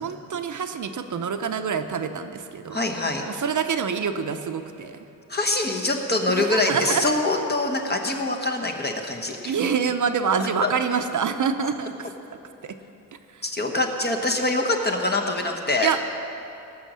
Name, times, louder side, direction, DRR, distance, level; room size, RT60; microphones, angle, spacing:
voice 1, 0.0-2.8 3.3-5.0 6.3-7.1 9.4-12.1 12.6-12.8 13.3-13.4 15.8-16.0, right 6 dB, 60° right, 8 dB, 0.7 m, -26 dB
voice 2, 2.7-3.2 5.3-9.5 10.6-10.7 13.4-15.9, left 2 dB, 30° left, 2 dB, 1.1 m, -24 dB
18.5 x 6.4 x 7.4 m, 2.8 s
wide cardioid pair, 160°, 33 cm